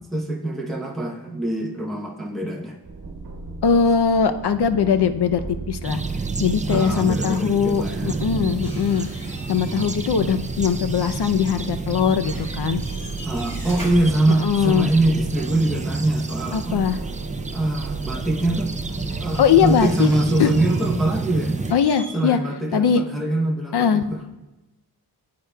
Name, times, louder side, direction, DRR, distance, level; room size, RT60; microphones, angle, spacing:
voice 1, 0.1-2.8 6.7-8.1 13.2-16.8 17.5-18.7 19.2-21.6 22.1-24.2, right 2 dB, ahead, -1 dB, 0.8 m, -23 dB
sound 1, 2.8-19.9, right 3 dB, 55° right, 1.2 m, -35 dB
voice 2, 3.6-5.4 5.7-6.0 6.4-9.1 9.5-12.8 14.3-14.9 16.5-17.0 19.4-20.1 20.4-20.5 21.7-22.4 22.7-23.0 23.7-24.0, left 7 dB, 70° left, 10 dB, 0.6 m, -20 dB
sound 2, 5.8-21.7, right 3 dB, 20° right, 0.4 m, -30 dB
sound 3, 8.6-10.2 10.5-11.9 12.2-15.0 17.3-17.4 18.0-22.1, equal, 20° left, 3.0 m, -42 dB
15.5 x 8.5 x 2.2 m, 1.0 s
wide cardioid pair, 120°, 41 cm